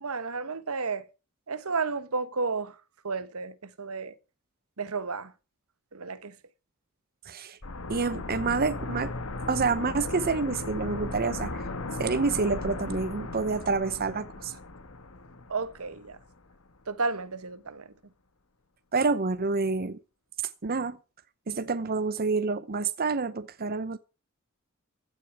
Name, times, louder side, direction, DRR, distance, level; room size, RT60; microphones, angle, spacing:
voice 1, 0.0-1.1 1.5-2.7 3.0-4.1 4.8-5.3 5.9-6.3 15.5-16.2 16.9-17.9, right 4 dB, 70° right, 1.2 m, -32 dB
voice 2, 7.3-7.6 7.9-9.1 9.5-11.6 12.0-14.5 18.9-20.0 20.6-21.0 21.5-24.0, right 4 dB, 45° right, 0.8 m, -28 dB
sound 1, 7.6-16.3 16.6-16.7, left 2 dB, 70° left, 1.8 m, -36 dB
16.0 x 11.5 x 4.7 m
head